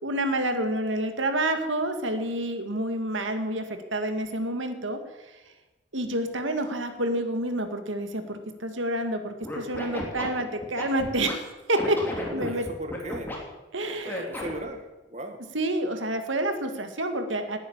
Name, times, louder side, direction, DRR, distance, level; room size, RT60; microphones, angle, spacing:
voice 1, 0.0-5.0 5.9-11.4 11.7-12.0 12.3-12.7 13.7-14.3 15.5-17.6, right 1 dB, 80° right, 7 dB, 2.0 m, -28 dB
Scratching (performance technique), 9.4-11.3 11.8-13.4 14.0-14.7, left 1 dB, 10° left, 3.3 m, -34 dB
voice 2, 12.2-13.3 13.9-15.4, right 1 dB, 35° right, 6 dB, 1.3 m, -37 dB
19.5 x 9.6 x 7.3 m, 1.1 s
head